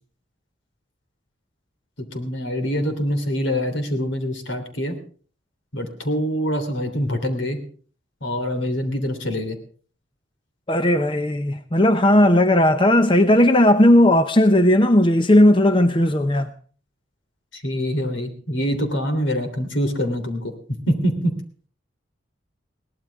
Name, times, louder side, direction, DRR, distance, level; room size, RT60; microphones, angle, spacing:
voice 1, 2.1-5.0 5.7-7.6 8.2-9.6 17.5-20.5 20.9-21.3, equal, 75° left, 3.3 m, -25 dB
voice 2, 10.7-16.5, left 1 dB, 25° left, 0.7 m, -16 dB
21.5 x 18.0 x 3.5 m
head